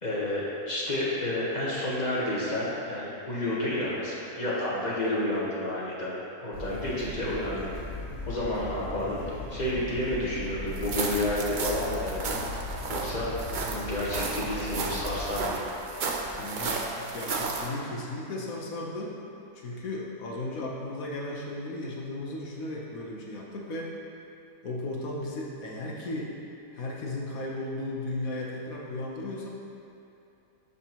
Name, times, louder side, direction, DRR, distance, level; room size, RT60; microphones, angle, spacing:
voice 1, 0.0-6.1 6.4-7.7 8.2-9.2 9.5-15.7, left 1 dB, 30° left, -7 dB, 1.2 m, -30 dB
Bird / Stream, 6.5-15.5, left 1 dB, 85° left, 2.2 m, -38 dB
sound 1, 10.8-17.7, right 3 dB, 65° right, 0.4 m, -33 dB
voice 2, 16.3-19.2 19.5-23.9 24.6-26.3 26.7-29.5, left 2 dB, 70° left, -3 dB, 1.4 m, -35 dB
12.0 x 4.1 x 2.9 m, 2.8 s
omnidirectional pair, 1.6 m